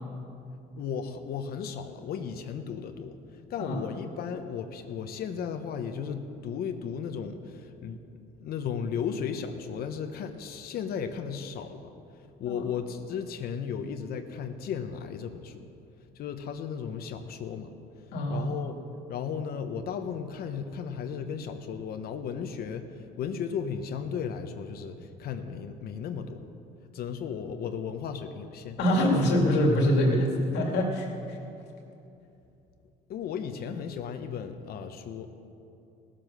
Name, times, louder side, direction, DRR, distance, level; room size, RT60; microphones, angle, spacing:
voice 1, 0.7-8.0 8.4-15.7 16.1-17.7 18.3-18.8 19.1-26.4 26.9-28.8 33.1-35.3, left 7 dB, 65° left, 7 dB, 0.9 m, -35 dB
voice 2, 18.1-18.5 28.8-31.4, equal, 85° left, 0 dB, 2.4 m, -24 dB
17.0 x 7.6 x 6.5 m, 2.7 s
cardioid pair, 110°, 17 cm